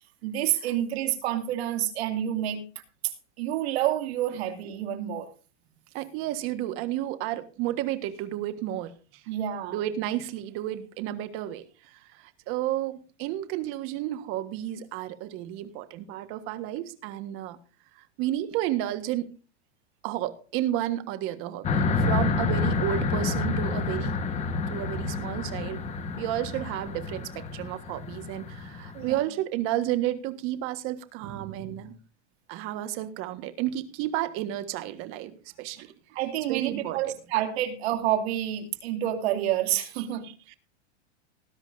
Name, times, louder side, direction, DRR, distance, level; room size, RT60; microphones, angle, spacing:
voice 1, 0.2-2.6 3.0-3.1 3.4-5.3 9.3-9.8 28.9-29.2 36.1-40.2, right 12 dB, 65° right, 6 dB, 2.6 m, -28 dB
voice 2, 5.9-9.2 9.7-17.6 18.0-19.3 20.0-24.2 24.7-25.8 26.2-31.9 32.5-35.9 36.5-37.1 40.0-40.6, right 13 dB, 40° right, 10 dB, 1.5 m, -32 dB
sound 1, 21.6-29.1, left 4 dB, 20° left, 1.4 m, -29 dB
19.5 x 10.5 x 2.7 m, 0.34 s
supercardioid pair, 150°, 35 cm